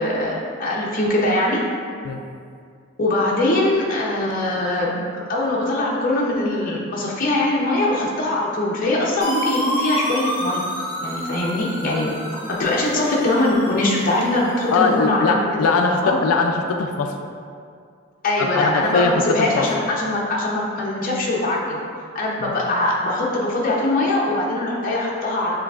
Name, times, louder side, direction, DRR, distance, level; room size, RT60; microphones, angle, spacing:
voice 1, 0.0-1.6 3.0-10.6 11.0-12.1 12.5-15.4 15.8-16.2 18.2-21.8 22.1-25.6, left 1 dB, 40° left, -4 dB, 0.6 m, -22 dB
sound 1, 9.2-15.0, equal, 20° right, 1.1 m, -29 dB
voice 2, 14.7-17.1 18.4-19.1 19.4-19.6 22.4-22.5, left 4 dB, 85° left, 4 dB, 0.3 m, -21 dB
7.1 x 3.1 x 2.3 m, 2.3 s
head